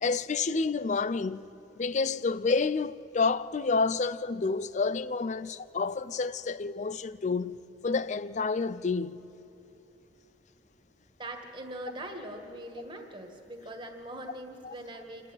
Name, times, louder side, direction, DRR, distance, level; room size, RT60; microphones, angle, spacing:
voice 1, 0.0-1.4 1.8-9.3 14.6-14.7, left 4 dB, 40° left, 0.5 m, -29 dB
voice 2, 11.2-15.3, right 1 dB, 25° right, 1.7 m, -42 dB
27.5 x 11.0 x 9.0 m
head